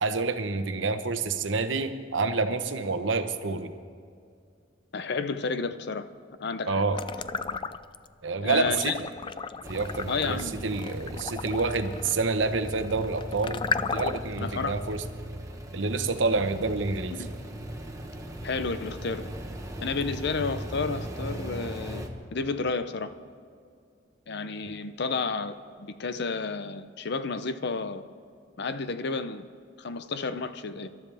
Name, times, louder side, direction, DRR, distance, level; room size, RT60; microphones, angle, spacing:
voice 1, 0.0-3.7 6.7-7.0 8.2-9.1 9.7-10.4 10.6-13.7 13.9-15.0 15.7-17.2, right 3 dB, 70° right, 9 dB, 0.9 m, -28 dB
voice 2, 4.9-6.1 6.4-6.8 8.4-8.9 10.1-10.7 14.4-14.8 17.1-17.3 18.4-19.3 19.8-22.0 22.3-23.1 24.3-28.0 28.6-29.4 29.8-30.9, left 4 dB, 60° left, 11 dB, 0.7 m, -31 dB
sound 1, 6.9-8.1 8.5-14.4, left 5 dB, 25° left, 0.4 m, -34 dB
sound 2, 9.6-22.1, right 1 dB, 15° right, 1.2 m, -38 dB
26.0 x 12.0 x 3.4 m, 2.3 s
head